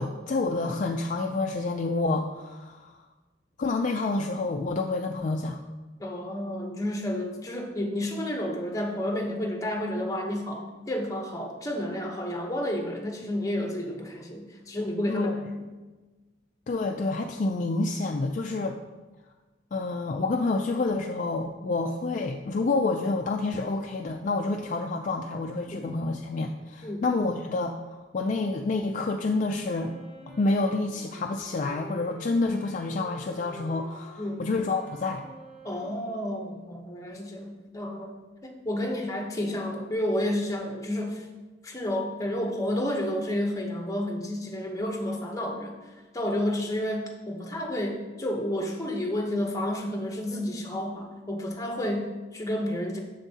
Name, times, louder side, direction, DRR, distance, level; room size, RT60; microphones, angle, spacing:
voice 1, 0.0-3.0 3.6-5.6 15.1-15.4 16.7-18.8 19.7-27.8 28.1-29.9 30.3-35.2, left 3 dB, 40° left, 3 dB, 0.3 m, -28 dB
voice 2, 6.0-15.7 25.7-25.8 26.8-27.0 34.2-34.4 35.6-38.1 38.4-41.3 41.6-45.7 46.1-53.0, left 1 dB, 15° left, 1 dB, 0.8 m, -31 dB
Wind instrument woodwind instrument, 29.3-37.0, left 1 dB, 5° right, 2.2 m, -49 dB
7.2 x 7.0 x 2.8 m, 1.2 s
head